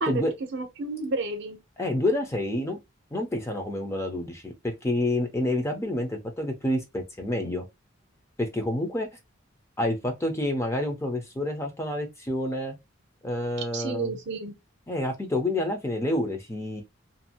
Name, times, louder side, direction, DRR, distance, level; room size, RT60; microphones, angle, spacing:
voice 1, 0.5-1.6 13.7-14.6, right 3 dB, 60° right, 0.7 m, -30 dB
voice 2, 1.8-2.8 3.1-7.6 8.4-9.1 9.8-12.8 13.2-14.1 14.9-16.8, left 1 dB, 15° left, 0.5 m, -28 dB
2.6 x 2.4 x 2.8 m
head